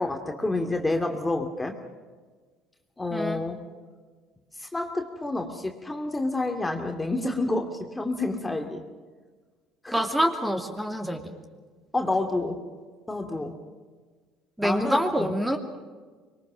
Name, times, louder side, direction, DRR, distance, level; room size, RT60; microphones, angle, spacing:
voice 1, 0.0-1.8 3.0-3.6 4.6-8.8 9.8-10.0 11.9-12.6 13.1-13.6 14.6-15.3, left 2 dB, 15° left, 3 dB, 2.4 m, -29 dB
voice 2, 9.9-11.3 14.6-15.6, equal, 5° right, 4 dB, 2.6 m, -26 dB
25.5 x 22.5 x 6.2 m, 1.4 s
hypercardioid pair, 60°, 0 cm